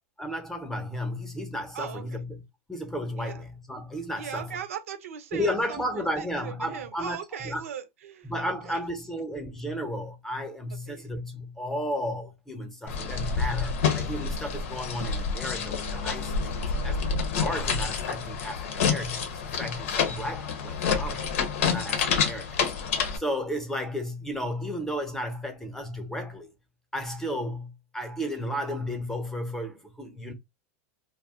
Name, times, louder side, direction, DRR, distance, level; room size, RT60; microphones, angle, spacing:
voice 1, 0.2-2.4 2.7-4.5 5.3-7.6 8.2-16.5 16.8-17.0 17.3-21.3 21.6-22.6 23.1-26.5 26.9-30.3, equal, 5° left, 0.7 m, -33 dB
voice 2, 1.7-2.2 3.2-3.4 4.2-8.3 8.6-8.8 10.9-11.2 13.1-13.2 16.3-16.4, right 8 dB, 85° right, 0.7 m, -39 dB
sound 1, 12.9-23.2, left 6 dB, 75° left, 0.7 m, -28 dB
2.4 x 2.1 x 3.6 m
supercardioid pair, 130°, 7 cm